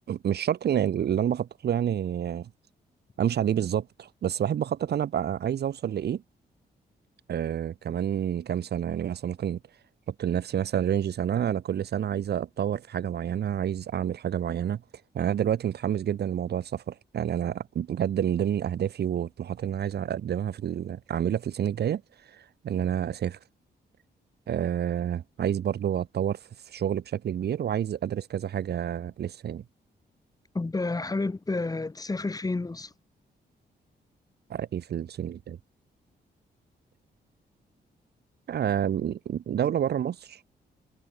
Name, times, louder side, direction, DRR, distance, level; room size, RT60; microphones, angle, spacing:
voice 1, 0.1-2.5 3.2-6.2 7.3-9.6 10.2-14.8 15.1-22.0 22.3-23.4 24.5-26.4 26.7-29.6 34.5-35.6 38.5-40.4, right 9 dB, 65° right, 1.4 m, -28 dB
voice 2, 30.5-32.9, left 3 dB, 20° left, 4.6 m, -30 dB
cardioid pair, 120°, 18 cm